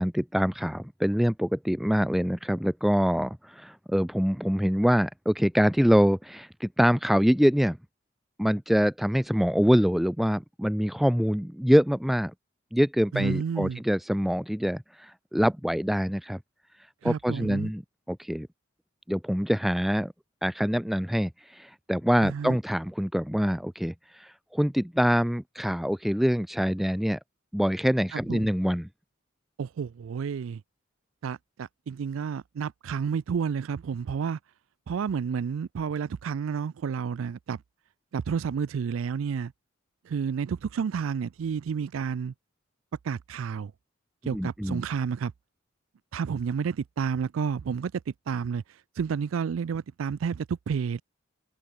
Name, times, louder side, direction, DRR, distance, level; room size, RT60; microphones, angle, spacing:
voice 1, 0.0-7.8 8.4-12.3 12.7-16.4 17.0-17.8 18.1-18.5 19.1-20.1 20.4-27.2 27.5-28.9 44.3-44.8, equal, ahead, 0.3 m, -25 dB
voice 2, 13.1-13.8 17.0-17.7 22.2-22.6 28.1-28.5 29.6-30.6 31.2-34.4 34.9-37.6 38.1-39.5 40.1-42.3 43.0-43.7 44.2-45.3 46.1-51.0, right 6 dB, 85° right, 0.4 m, -30 dB
head